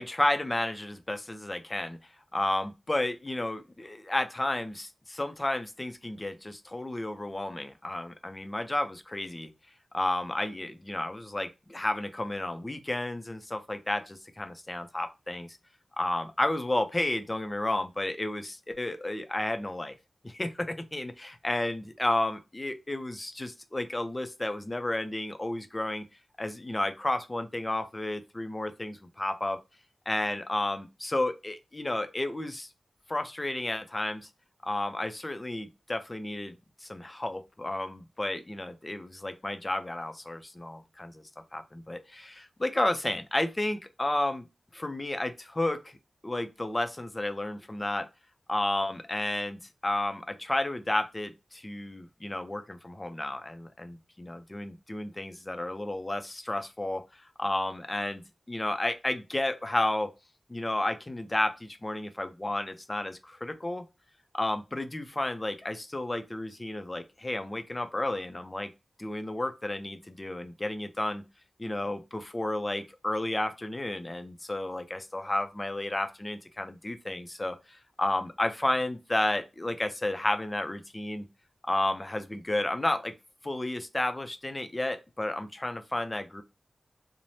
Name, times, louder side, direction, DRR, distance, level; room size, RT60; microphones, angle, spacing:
voice 1, 0.0-2.0 2.3-9.5 9.9-15.6 16.0-19.9 20.2-26.0 26.4-29.6 30.1-32.7 33.1-34.3 34.6-36.6 36.8-41.2 41.5-44.4 44.7-45.8 46.2-48.1 48.5-57.0 57.4-60.1 60.5-63.8 64.3-68.7 69.0-71.2 71.6-81.3 81.6-83.1 83.4-86.4, left 1 dB, 25° left, 0.5 m, -32 dB
3.1 x 2.0 x 2.7 m
wide cardioid pair, 65°, 0 cm